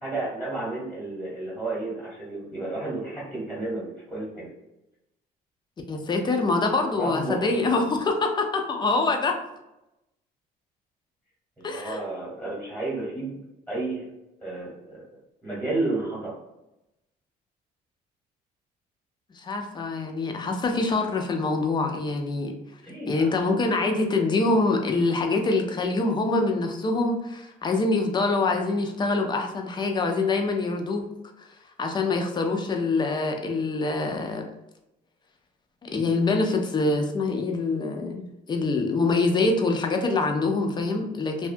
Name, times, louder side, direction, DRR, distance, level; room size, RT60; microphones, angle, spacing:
voice 1, 0.0-4.5 7.0-7.7 11.6-13.4 13.7-14.0 14.4-15.0 15.4-16.3 22.8-23.6, right 2 dB, 5° right, -7 dB, 1.0 m, -32 dB
voice 2, 5.9-9.3 11.6-12.0 19.4-22.5 23.1-31.0 31.8-34.4 35.8-41.5, left 3 dB, 25° left, 3 dB, 0.4 m, -25 dB
2.6 x 2.2 x 2.5 m, 0.91 s
cardioid pair, 110°, 17 cm